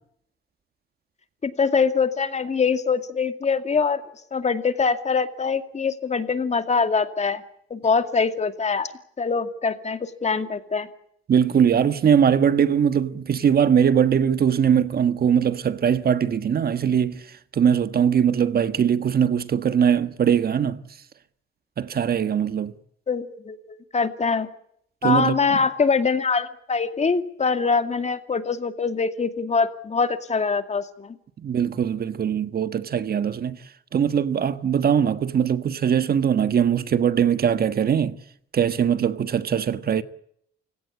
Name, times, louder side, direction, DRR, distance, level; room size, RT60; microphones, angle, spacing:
voice 1, 1.4-4.0 4.3-7.4 7.7-8.9 9.2-10.9 23.1-24.5 25.0-31.2, left 5 dB, 35° left, 2.3 m, -23 dB
voice 2, 11.3-17.2 17.5-20.8 21.8-22.7 25.0-25.3 31.4-33.6 33.9-38.2 38.5-40.0, right 8 dB, 50° right, 1.4 m, -21 dB
29.0 x 17.0 x 8.5 m
cardioid pair, 90°, 20 cm